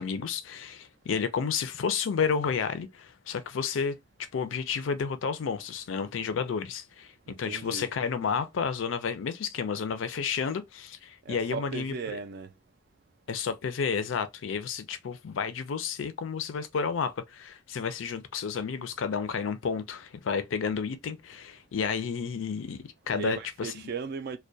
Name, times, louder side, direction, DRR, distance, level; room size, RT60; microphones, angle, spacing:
voice 1, 0.0-7.1 7.4-11.9 13.3-23.7, left 6 dB, 75° left, 0.4 m, -31 dB
voice 2, 7.3-7.9 11.3-12.5 23.1-24.4, right 5 dB, 50° right, 0.3 m, -37 dB
2.2 x 2.1 x 2.6 m
head